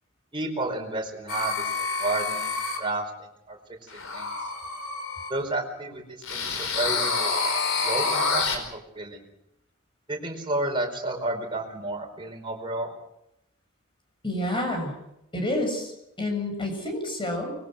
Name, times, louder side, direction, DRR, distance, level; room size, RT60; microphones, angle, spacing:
voice 1, 0.3-3.6 3.9-4.3 5.3-7.4 7.8-9.3 10.1-12.9, right 2 dB, 25° right, 1 dB, 4.8 m, -31 dB
sound 1, 1.3-2.8 3.9-5.3 6.2-8.6, left 4 dB, 65° left, 5.0 m, -28 dB
voice 2, 14.2-14.9 15.3-15.9 16.2-17.5, left 1 dB, 25° left, 4 dB, 7.1 m, -28 dB
24.5 x 21.5 x 6.4 m, 0.82 s
head